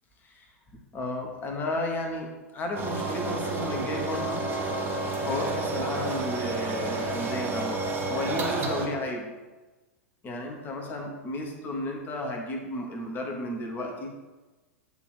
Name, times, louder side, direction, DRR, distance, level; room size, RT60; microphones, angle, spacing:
voice 1, 0.2-4.5 5.1-9.3 10.2-14.1, left 1 dB, 25° left, 1 dB, 1.2 m, -33 dB
sound 1, 2.7-8.9, right 3 dB, 25° right, 1.1 m, -30 dB
8.2 x 3.0 x 4.9 m, 1.2 s
figure-of-eight pair, 95°, 8 cm